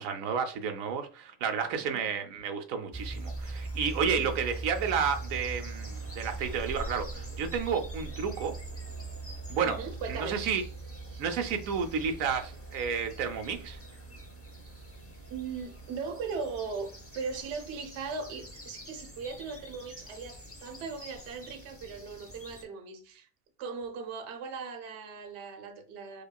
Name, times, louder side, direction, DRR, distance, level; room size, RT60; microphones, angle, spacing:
voice 1, 0.0-8.5 9.5-9.8 10.2-10.6 11.2-13.8, right 6 dB, 90° right, 1.0 m, -31 dB
voice 2, 1.7-2.2 4.0-4.4 9.6-10.7 11.1-11.2 12.2-12.5 15.3-23.3 23.6-26.2, right 5 dB, 65° right, 0.9 m, -39 dB
sound 1, 2.9-22.6, right 2 dB, 20° left, 0.4 m, -42 dB
4.9 x 2.3 x 2.2 m
omnidirectional pair, 1.4 m